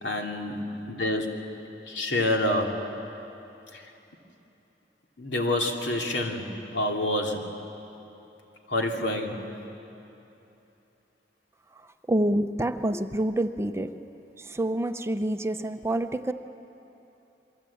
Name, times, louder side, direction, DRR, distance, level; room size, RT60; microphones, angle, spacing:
voice 1, 0.0-1.4 1.9-2.9 3.7-3.9 5.2-7.4 8.7-9.5, left 1 dB, 90° left, 1 dB, 2.9 m, -28 dB
voice 2, 12.1-13.9 14.4-16.3, right 1 dB, 15° right, 8 dB, 0.7 m, -27 dB
28.5 x 23.0 x 8.6 m, 2.9 s
head